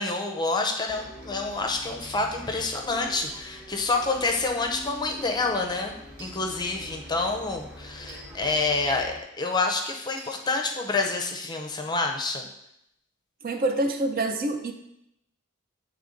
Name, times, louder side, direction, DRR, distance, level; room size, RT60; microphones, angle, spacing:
voice 1, 0.0-5.9 6.2-12.5, left 3 dB, 20° left, 3 dB, 0.6 m, -28 dB
Bus, 0.9-9.2, left 1 dB, 5° right, 0.9 m, -44 dB
sound 1, 2.0-2.2 4.2-4.4 6.2-6.4 8.1-8.3 10.2-10.4, right 2 dB, 80° right, 1.5 m, -44 dB
voice 2, 13.4-14.7, right 2 dB, 45° right, 6 dB, 0.5 m, -26 dB
8.4 x 3.4 x 3.8 m, 0.81 s
head